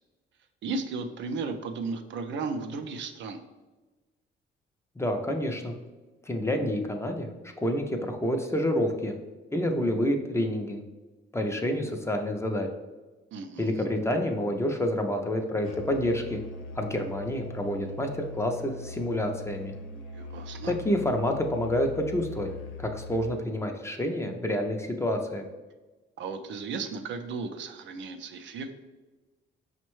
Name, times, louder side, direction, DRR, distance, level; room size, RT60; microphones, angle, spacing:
voice 1, 0.6-3.4 13.3-13.8 19.9-20.7 26.2-28.7, right 4 dB, 70° right, 6 dB, 0.4 m, -35 dB
voice 2, 5.0-5.8 6.2-7.3 7.6-9.1 9.5-10.8 11.3-12.7 13.6-16.4 16.8-19.7 20.6-22.5 22.8-25.4, left 1 dB, 15° left, 3 dB, 0.4 m, -28 dB
Musical instrument, 15.6-23.4, left 2 dB, 85° left, 0.4 m, -41 dB
5.2 x 2.1 x 3.0 m, 1.2 s
cardioid pair, 90°, 20 cm